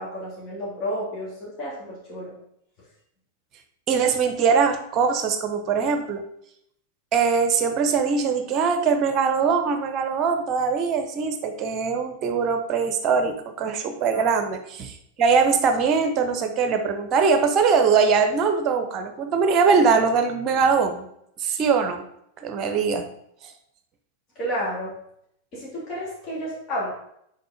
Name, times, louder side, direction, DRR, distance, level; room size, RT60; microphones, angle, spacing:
voice 1, 0.0-2.3 14.1-14.2 24.4-24.9 25.5-26.9, equal, 35° left, -6 dB, 2.6 m, -31 dB
voice 2, 3.9-6.2 7.1-21.0 21.4-22.0 22.4-23.1, right 5 dB, 35° right, 7 dB, 1.0 m, -22 dB
6.6 x 4.7 x 5.0 m, 0.73 s
figure-of-eight pair, 90°, 0 cm